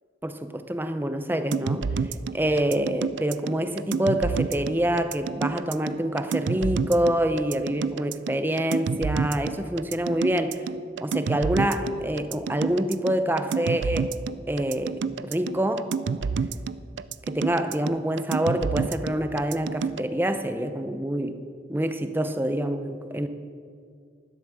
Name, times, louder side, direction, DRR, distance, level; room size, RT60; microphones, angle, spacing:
voice 1, 0.2-1.9 2.3-10.6 11.0-14.1 14.5-15.9 17.3-21.4 21.7-23.3, right 1 dB, 10° right, 9 dB, 0.6 m, -26 dB
sound 1, 1.5-20.0, right 5 dB, 75° right, 0.4 m, -29 dB
11.5 x 11.5 x 6.6 m, 2.2 s
head